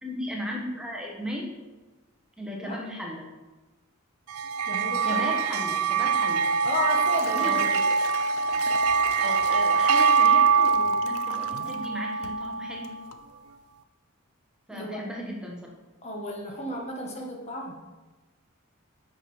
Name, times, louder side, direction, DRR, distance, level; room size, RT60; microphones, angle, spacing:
voice 1, 0.0-1.6 2.4-3.3 5.0-6.5 7.4-7.8 9.2-12.9 14.7-15.6, equal, 5° right, -2 dB, 1.0 m, -36 dB
sound 1, 4.3-12.9, right 5 dB, 85° right, 0.4 m, -24 dB
voice 2, 4.7-5.2 6.6-7.6 14.7-15.0 16.0-17.8, left 1 dB, 30° left, 0 dB, 1.0 m, -33 dB
Liquid, 6.4-11.9 12.2-12.5 12.8-13.2, left 5 dB, 75° left, 0.5 m, -42 dB
7.7 x 5.9 x 4.7 m, 1.2 s
head